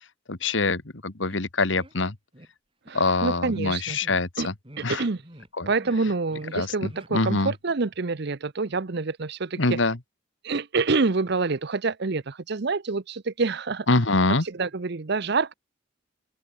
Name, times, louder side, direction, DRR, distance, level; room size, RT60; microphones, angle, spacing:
voice 1, 0.3-2.2 2.9-4.5 4.8-5.0 5.6-5.7 6.5-7.5 9.6-10.0 13.9-14.4, left 3 dB, 70° left, 1.8 m, -24 dB
sound 1, 1.3-1.4 1.7-1.9 2.3-2.5 2.8-3.0 3.4-3.6 4.0-4.2 4.6-4.9 5.2-5.5 5.7-6.0 6.3-6.6 6.9-7.1 7.4-7.6, right 1 dB, 25° right, 6.2 m, -47 dB
voice 2, 2.9-4.0 4.4-4.5 4.8-5.2 5.7-9.8 10.4-13.9 14.4-15.5, right 4 dB, 55° right, 0.7 m, -27 dB
open air
head